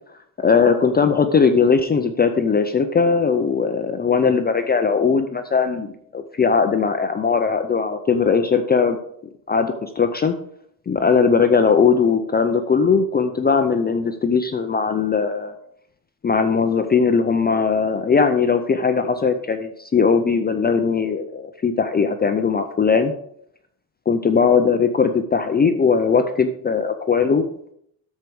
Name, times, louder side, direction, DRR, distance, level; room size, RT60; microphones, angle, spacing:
voice 1, 0.4-9.0 9.5-10.3 10.9-15.5 16.2-23.1 24.1-27.5, left 5 dB, 25° left, 7 dB, 0.5 m, -19 dB
13.0 x 4.6 x 4.7 m, 0.71 s
cardioid pair, 140°, 40 cm